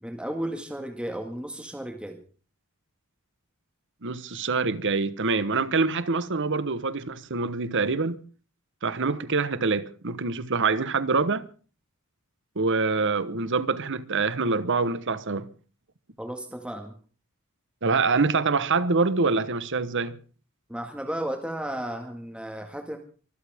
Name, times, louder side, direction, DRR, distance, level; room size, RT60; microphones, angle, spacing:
voice 1, 0.0-2.2 16.2-16.9 20.7-23.0, right 1 dB, 5° right, 1.9 m, -34 dB
voice 2, 4.0-8.2 8.8-11.4 12.6-15.5 17.8-20.2, right 4 dB, 55° right, 1.2 m, -25 dB
24.5 x 14.5 x 3.6 m
head